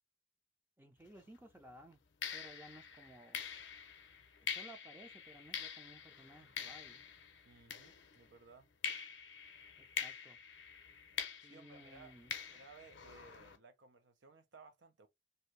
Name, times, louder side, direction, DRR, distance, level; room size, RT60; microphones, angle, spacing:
voice 1, 0.8-2.0 2.3-3.4 4.4-7.0 9.8-10.4 11.4-12.3, right 1 dB, 10° right, 0.5 m, -57 dB
sound 1, 1.1-1.3 2.2-8.4 8.8-13.6, left 7 dB, 65° left, 0.6 m, -45 dB
voice 2, 7.4-8.7 11.4-12.1 12.5-15.1, right 4 dB, 65° right, 0.6 m, -59 dB
2.7 x 2.6 x 3.1 m
head